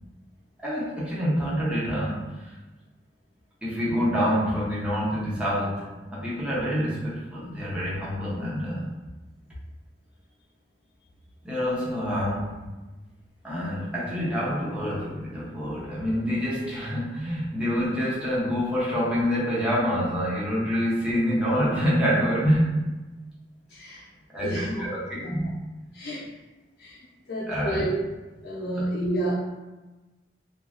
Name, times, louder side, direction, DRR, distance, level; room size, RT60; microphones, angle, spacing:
voice 1, 0.6-2.3 3.6-8.9 11.4-12.7 13.4-22.7 24.3-25.5 27.5-27.9 28.8-28.9, equal, 5° right, -8 dB, 0.7 m, -26 dB
voice 2, 23.7-24.0 24.4-24.9 25.2-25.5 25.9-26.2 26.8-27.0 27.3-28.0 28.4-29.3, right 1 dB, 65° left, -7 dB, 0.6 m, -29 dB
2.9 x 2.4 x 2.4 m, 1.1 s
head